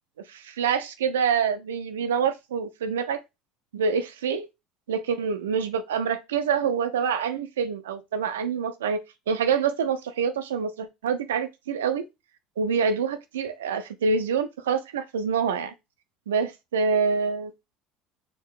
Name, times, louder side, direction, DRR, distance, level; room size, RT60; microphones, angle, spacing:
voice 1, 0.3-3.2 3.7-4.5 4.9-9.0 9.3-12.1 12.6-15.7 16.3-17.5, right 6 dB, 85° right, 0.4 m, -26 dB
4.4 x 2.7 x 2.4 m
hypercardioid pair, 70°, 0 cm